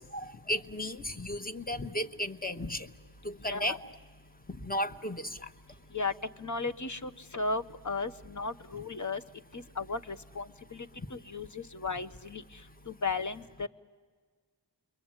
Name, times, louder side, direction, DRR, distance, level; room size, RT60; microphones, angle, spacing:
voice 1, 0.0-2.9 3.2-3.9 4.6-5.5, left 1 dB, 20° left, 9 dB, 1.1 m, -34 dB
voice 2, 3.4-3.8 5.9-6.1 6.4-9.2 9.5-12.4 12.9-13.7, left 3 dB, 40° left, 11 dB, 1.0 m, -35 dB
29.5 x 22.5 x 8.9 m, 1.5 s
wide cardioid pair, 60°, 44 cm